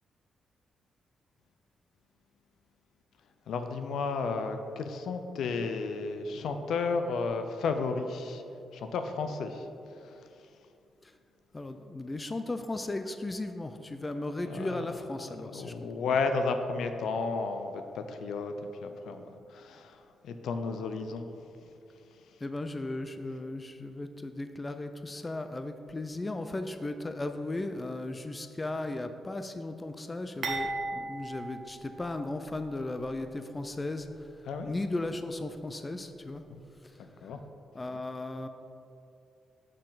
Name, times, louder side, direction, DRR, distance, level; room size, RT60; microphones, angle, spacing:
voice 1, 3.5-8.4 8.7-10.5 14.5-14.7 15.3-18.5 18.8-21.3 21.6-21.7 22.1-22.4 34.5-34.7 36.5-36.6 37.2-37.4, left 4 dB, 80° left, 7 dB, 0.5 m, -33 dB
voice 2, 11.5-16.2 22.4-36.4 36.8-37.3 37.7-38.5, left 2 dB, 20° left, 8 dB, 0.3 m, -36 dB
sound 1, 30.4-32.6 32.9-33.1 34.0-34.1, right 3 dB, 55° right, 0.9 m, -37 dB
6.4 x 6.2 x 4.0 m, 2.6 s
cardioid pair, 125°, 0 cm